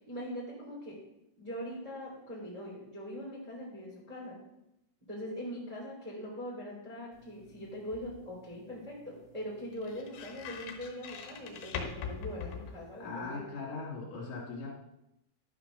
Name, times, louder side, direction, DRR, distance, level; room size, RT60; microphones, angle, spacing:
voice 1, 0.1-1.0 1.4-4.4 5.1-13.4, equal, 10° right, -4 dB, 2.3 m, -42 dB
sound 1, 7.1-13.4, left 6 dB, 70° left, 3.0 m, -44 dB
voice 2, 13.0-14.7, left 4 dB, 55° left, -4 dB, 3.9 m, -39 dB
12.0 x 5.9 x 6.2 m, 0.84 s
omnidirectional pair, 4.8 m